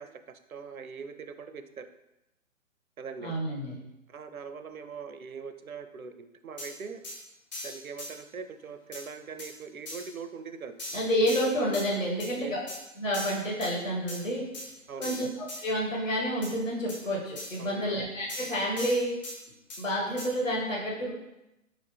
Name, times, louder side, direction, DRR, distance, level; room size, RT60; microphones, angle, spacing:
voice 1, 0.0-1.9 3.0-3.4 4.1-7.0 7.6-10.8 12.4-12.5 14.9-15.3 17.6-18.0, right 5 dB, 90° right, 10 dB, 0.5 m, -42 dB
voice 2, 3.2-3.8 10.9-12.6 13.0-14.4 15.0-19.1 19.8-21.1, equal, 65° left, -4 dB, 1.6 m, -29 dB
sound 1, 6.6-6.7 7.0-7.2 7.5-8.1 8.9-9.0 9.4-9.5 9.9-10.1 10.8-11.9 12.2-12.3 12.7-12.8 13.1-13.7 14.1-14.2 14.5-14.7 15.0-15.6 16.4-16.5 16.9-17.0 17.4-17.6 18.3-19.4 19.7-19.8 20.2-20.3, left 1 dB, 30° left, 1.2 m, -39 dB
4.9 x 2.9 x 3.3 m, 0.91 s
figure-of-eight pair, 135°, 41 cm